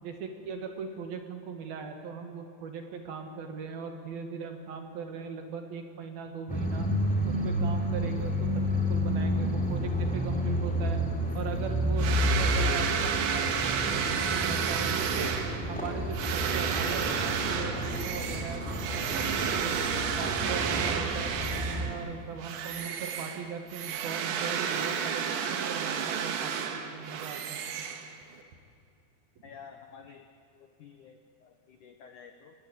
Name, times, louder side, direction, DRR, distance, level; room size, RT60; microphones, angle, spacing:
voice 1, 0.0-6.9 7.2-11.0 11.3-15.4 15.7-19.8 20.2-27.8, right 6 dB, 60° right, 5 dB, 3.3 m, -39 dB
sound 1, 6.5-22.0, equal, ahead, 2.6 m, -30 dB
sound 2, 12.0-22.0 22.4-28.4, right 7 dB, 75° right, 3.7 m, -31 dB
voice 2, 29.4-30.2 30.8-32.5, left 6 dB, 75° left, 6 dB, 1.8 m, -50 dB
29.5 x 19.0 x 8.1 m, 2.6 s
omnidirectional pair, 5.2 m